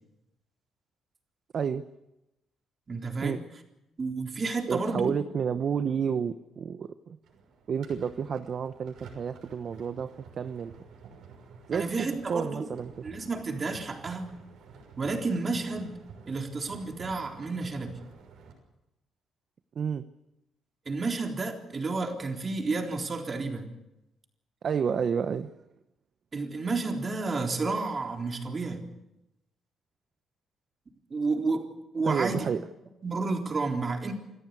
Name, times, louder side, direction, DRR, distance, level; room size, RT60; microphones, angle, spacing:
voice 1, 2.9-3.4 4.0-5.1 11.7-12.7 13.0-14.3 15.0-16.0 16.3-17.9 20.9-23.7 26.3-28.9 31.1-31.7 31.9-32.5 33.0-34.1, right 3 dB, 35° right, 2 dB, 3.8 m, -31 dB
voice 2, 4.7-7.2 7.7-10.7 11.7-13.0 19.8-20.0 24.6-25.5 32.0-32.6, right 7 dB, 55° right, 10 dB, 0.9 m, -30 dB
sound 1, 7.2-18.5, right 5 dB, 80° right, 6.2 m, -51 dB
27.0 x 14.0 x 8.4 m, 0.92 s
cardioid pair, 90°, 0 cm